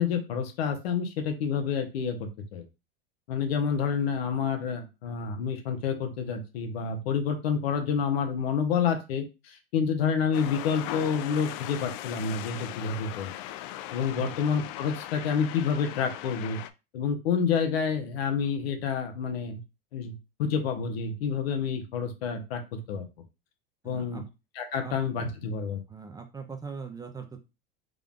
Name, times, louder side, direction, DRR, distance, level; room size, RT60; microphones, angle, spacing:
voice 1, 0.0-2.6 3.3-13.3 13.9-16.6 16.9-19.6 19.9-23.1 23.8-24.2 24.5-25.8, left 6 dB, 85° left, 6 dB, 1.0 m, -29 dB
sound 1, 10.3-16.7, left 13 dB, 60° left, 0.4 m, -39 dB
voice 2, 23.8-24.3 24.8-24.9 25.9-27.4, right 5 dB, 10° right, 5 dB, 0.5 m, -40 dB
3.8 x 2.4 x 3.6 m, 0.27 s
supercardioid pair, 120°, 30 cm